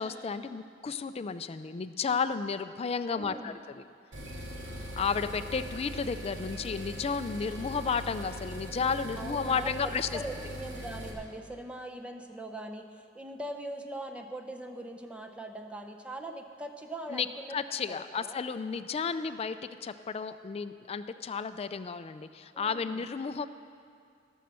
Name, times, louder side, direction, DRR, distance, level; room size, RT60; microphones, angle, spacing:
voice 1, 0.0-3.8 5.0-10.2 17.1-17.3 17.5-23.5, left 5 dB, 35° left, 11 dB, 0.4 m, -33 dB
voice 2, 3.2-3.5 7.3-7.7 9.2-17.6 17.9-18.4 22.5-23.0, right 1 dB, 5° right, 3 dB, 0.6 m, -41 dB
sound 1, 4.1-11.1, equal, 90° right, 2.1 m, -41 dB
16.0 x 6.4 x 6.8 m, 2.2 s
head